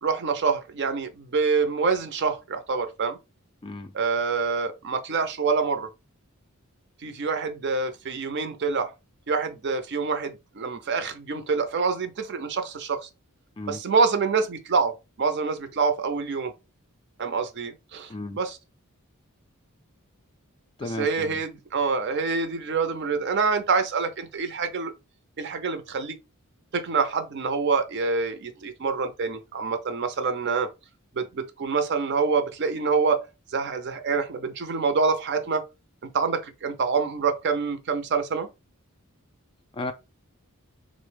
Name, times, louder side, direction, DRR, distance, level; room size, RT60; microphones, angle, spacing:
voice 1, 0.0-3.2 3.9-5.9 7.0-8.9 9.3-13.1 13.7-16.5 17.2-18.6 20.8-24.9 25.4-26.2 26.7-30.7 31.1-33.3 33.5-35.6 36.1-38.5, right 4 dB, 50° right, 0.5 m, -26 dB
voice 2, 20.8-21.4 39.7-39.9, left 2 dB, 25° left, 0.3 m, -34 dB
3.8 x 2.0 x 3.2 m
head